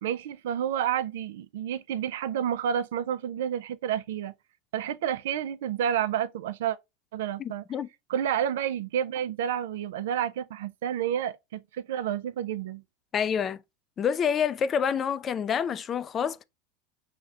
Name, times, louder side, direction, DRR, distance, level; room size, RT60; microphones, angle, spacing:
voice 1, 0.0-4.3 4.7-6.8 7.1-7.6 8.1-12.8, right 9 dB, 80° right, 0.3 m, -30 dB
voice 2, 7.4-7.9 13.1-13.6 14.0-16.4, left 7 dB, 30° left, 0.3 m, -27 dB
6.4 x 2.1 x 2.3 m
supercardioid pair, 110°, 0 cm